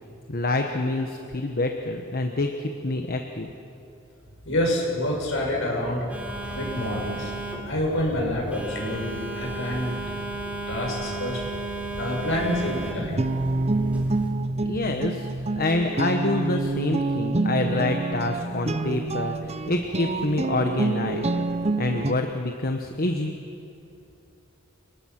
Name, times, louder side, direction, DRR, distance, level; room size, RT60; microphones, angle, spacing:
voice 1, 0.3-3.5 14.6-15.3 15.6-21.3 21.8-23.3, left 2 dB, 45° left, 4 dB, 1.2 m, -27 dB
voice 2, 4.5-6.0 6.5-7.3 7.7-10.0 10.7-11.4 12.0-13.2, left 1 dB, 65° left, -2 dB, 7.1 m, -27 dB
Telephone, 6.1-14.3, right 2 dB, 5° right, 3.3 m, -34 dB
sound 1, 13.0-22.1, right 2 dB, 30° right, 0.8 m, -27 dB
29.0 x 20.0 x 6.0 m, 2.7 s
head